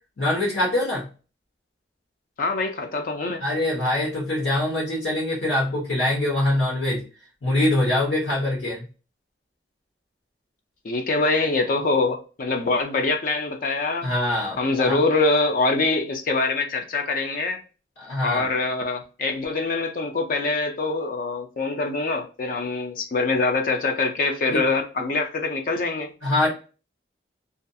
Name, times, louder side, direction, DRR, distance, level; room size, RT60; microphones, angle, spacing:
voice 1, 0.2-1.1 3.4-7.0 7.4-8.8 14.0-15.0 18.0-18.4 24.5-24.6 26.2-26.5, left 1 dB, 80° left, -4 dB, 1.0 m, -23 dB
voice 2, 2.4-3.4 10.8-14.1 14.6-17.6 18.2-26.1, left 3 dB, 50° left, 4 dB, 0.4 m, -24 dB
2.4 x 2.3 x 2.5 m, 0.34 s
head